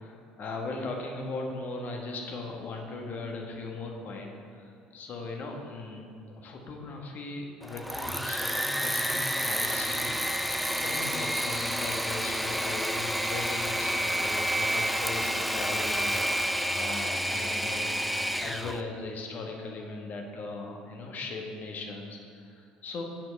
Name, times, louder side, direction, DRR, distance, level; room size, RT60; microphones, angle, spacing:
voice 1, 0.0-18.0 18.4-23.0, left 3 dB, 45° left, 1 dB, 1.1 m, -38 dB
Engine / Mechanisms, 7.6-18.8, equal, ahead, 0.4 m, -29 dB
5.9 x 4.6 x 6.2 m, 2.4 s
hypercardioid pair, 60°, 4 cm